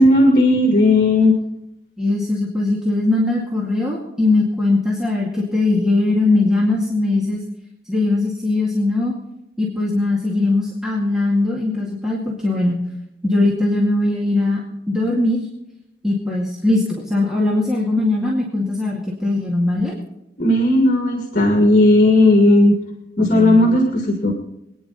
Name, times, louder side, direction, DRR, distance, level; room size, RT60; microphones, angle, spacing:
voice 1, 0.0-1.3 20.4-22.8 23.2-24.3, left 1 dB, 50° left, 1 dB, 2.0 m, -14 dB
voice 2, 2.0-7.4 7.9-9.1 9.6-12.8 13.2-14.6 14.9-15.4 16.0-19.9 23.2-23.7, left 2 dB, 5° right, -5 dB, 2.2 m, -20 dB
24.0 x 9.7 x 4.2 m, 0.86 s
head